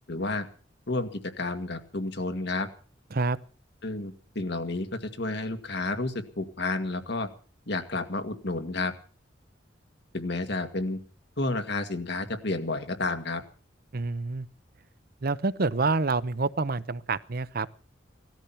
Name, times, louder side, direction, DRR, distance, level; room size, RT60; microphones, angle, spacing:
voice 1, 0.1-0.5 0.9-1.1 1.4-2.7 3.8-7.3 7.7-8.9 10.1-11.0 11.4-13.4, left 2 dB, 65° left, 7 dB, 2.0 m, -31 dB
voice 2, 13.9-14.5 15.2-17.7, right 3 dB, 55° right, 16 dB, 0.8 m, -27 dB
18.0 x 13.5 x 5.8 m, 0.41 s
head